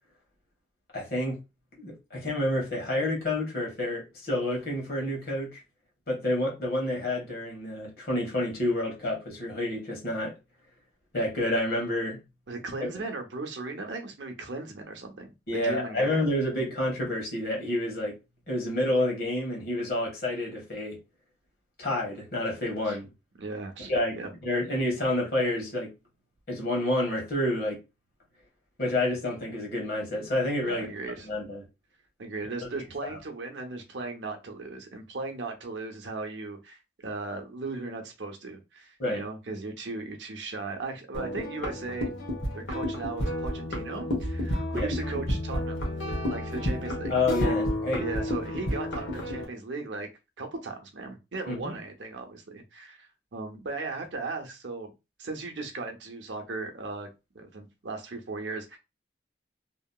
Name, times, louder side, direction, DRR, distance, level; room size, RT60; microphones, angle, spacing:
voice 1, 0.9-1.4 1.8-5.6 6.1-10.3 11.1-12.2 12.8-13.0 15.5-18.1 18.5-21.0 21.8-23.1 23.8-25.9 26.5-27.8 28.8-30.9 31.2-31.6 33.1-33.2 39.0-39.2 44.7-44.9 47.1-48.0 51.5-51.8, left 1 dB, 55° left, 1.3 m, -29 dB
voice 2, 12.5-16.3 22.9-23.0 23.4-24.3 30.6-31.3 32.2-42.1 42.5-45.8 46.3-47.1 47.5-47.6 48.0-50.1 50.4-54.9 55.2-57.1 57.3-58.8, right 3 dB, 85° right, 0.7 m, -37 dB
sound 1, 41.1-49.5, equal, 80° left, 1.1 m, -31 dB
2.9 x 2.7 x 2.3 m
head